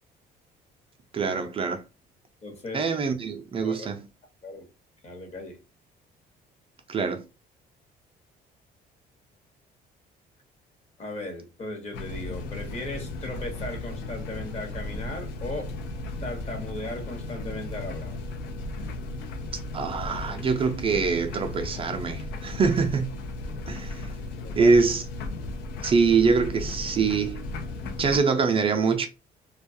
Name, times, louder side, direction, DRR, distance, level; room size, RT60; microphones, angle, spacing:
voice 1, 1.1-1.8 2.7-4.0 6.9-7.2 19.7-23.1 23.7-24.0 24.6-25.0 25.8-27.4 27.8-29.1, right 5 dB, 35° right, 0.4 m, -24 dB
voice 2, 2.4-2.8 3.6-3.9 4.4-4.6 5.0-5.6 11.0-15.7 16.2-18.2 24.3-24.7, left 2 dB, 40° left, 1.0 m, -37 dB
sound 1, 11.9-28.2, left 2 dB, 85° left, 0.5 m, -35 dB
2.3 x 2.2 x 2.6 m
cardioid pair, 110°, 17 cm